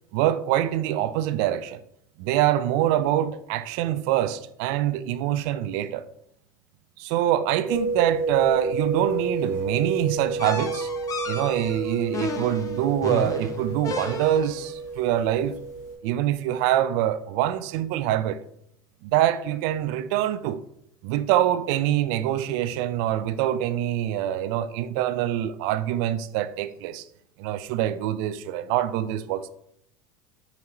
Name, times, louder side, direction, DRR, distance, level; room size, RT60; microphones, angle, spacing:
voice 1, 0.1-1.8 2.2-6.0 7.0-10.9 11.3-15.6 16.0-18.4 19.0-20.6 21.0-27.1 27.4-29.5, right 12 dB, 60° right, 0.3 m, -25 dB
sound 1, 7.7-15.9, right 3 dB, 70° left, 1.5 m, -31 dB
sound 2, 10.4-14.7, left 3 dB, 30° left, 0.7 m, -33 dB
5.0 x 2.9 x 2.9 m
hypercardioid pair, 80°, 11 cm